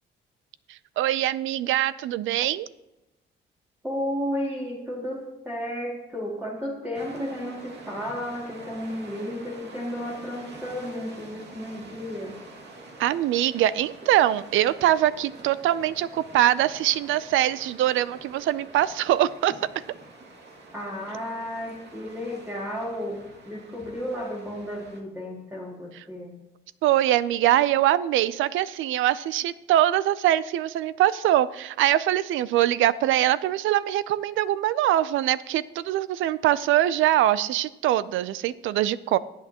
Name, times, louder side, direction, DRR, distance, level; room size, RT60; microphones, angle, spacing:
voice 1, 0.7-2.7 13.0-19.5 26.8-39.2, right 13 dB, 85° right, 17 dB, 0.5 m, -23 dB
voice 2, 3.8-12.4 20.7-26.4, equal, 10° right, -3 dB, 2.3 m, -33 dB
sound 1, 6.9-25.0, right 2 dB, 60° right, 2.2 m, -46 dB
18.0 x 8.4 x 2.9 m, 0.95 s
cardioid pair, 90°, 20 cm